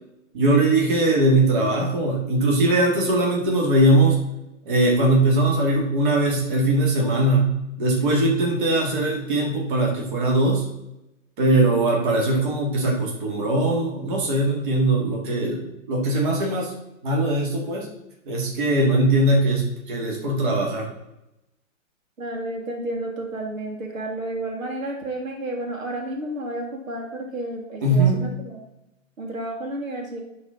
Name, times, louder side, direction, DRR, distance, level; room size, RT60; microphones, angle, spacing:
voice 1, 0.3-4.2 4.7-10.6 11.4-16.7 17.0-17.9 18.3-20.9 27.8-28.2, right 2 dB, 40° right, -2 dB, 2.0 m, -20 dB
voice 2, 22.2-28.6 29.2-30.2, right 1 dB, 85° right, 1 dB, 2.6 m, -31 dB
11.0 x 4.2 x 3.9 m, 0.89 s
hypercardioid pair, 165°, 40 cm